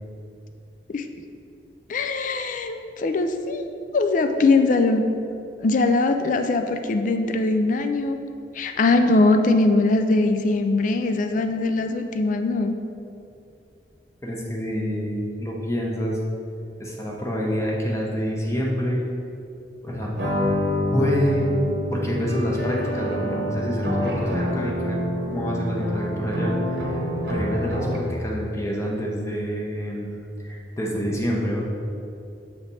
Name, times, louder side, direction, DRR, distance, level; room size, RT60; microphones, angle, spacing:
voice 1, 1.9-3.7 3.9-5.0 5.6-8.2 8.5-12.7, left 3 dB, 45° left, 7 dB, 0.4 m, -21 dB
voice 2, 14.2-16.2 16.8-19.0 19.8-20.2 20.9-21.4 21.9-27.0 27.3-30.1 30.4-31.6, equal, 15° left, -3 dB, 0.8 m, -27 dB
sound 1, 20.2-28.2, left 1 dB, 70° right, 0.9 m, -26 dB
7.1 x 3.3 x 4.1 m, 2.6 s
head